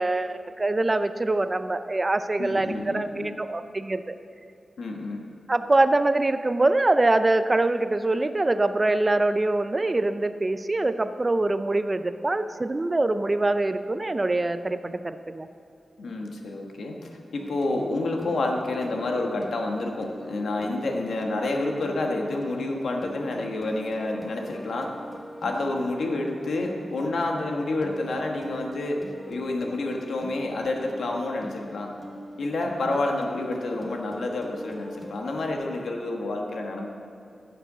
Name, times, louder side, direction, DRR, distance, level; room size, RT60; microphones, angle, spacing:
voice 1, 0.0-4.1 5.5-15.5, right 2 dB, 25° right, 11 dB, 0.4 m, -24 dB
voice 2, 2.4-3.4 4.8-5.2 16.0-24.9 25.4-29.0 29.3-31.9 32.4-36.9, left 2 dB, 85° left, 1 dB, 1.3 m, -29 dB
sound 1, 17.4-35.5, equal, 5° left, 0.9 m, -42 dB
11.0 x 6.8 x 6.6 m, 2.6 s
wide cardioid pair, 120°, 0 cm